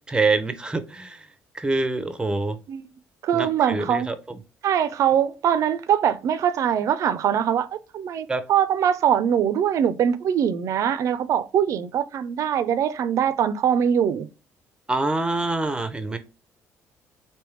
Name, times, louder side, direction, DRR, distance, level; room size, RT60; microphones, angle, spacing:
voice 1, 0.1-1.3 1.5-2.6 3.3-4.4 8.3-8.4 14.9-16.2, right 3 dB, 15° right, 0.6 m, -25 dB
voice 2, 3.2-4.1 4.6-14.3, right 9 dB, 60° right, 0.5 m, -22 dB
3.5 x 2.7 x 3.1 m
cardioid pair, 90°, 6 cm